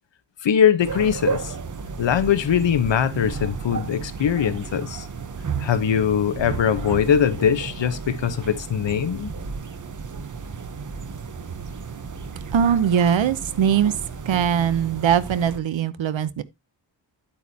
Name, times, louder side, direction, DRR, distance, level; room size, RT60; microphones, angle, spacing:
voice 1, 0.4-1.5 2.0-5.1 5.6-9.3, left 8 dB, 70° left, 1.1 m, -21 dB
sound 1, 0.8-15.6, right 5 dB, 40° right, 1.0 m, -33 dB
voice 2, 12.5-13.9 14.2-16.4, right 8 dB, 80° right, 0.9 m, -21 dB
9.6 x 8.8 x 2.8 m
wide cardioid pair, 175°, 45 cm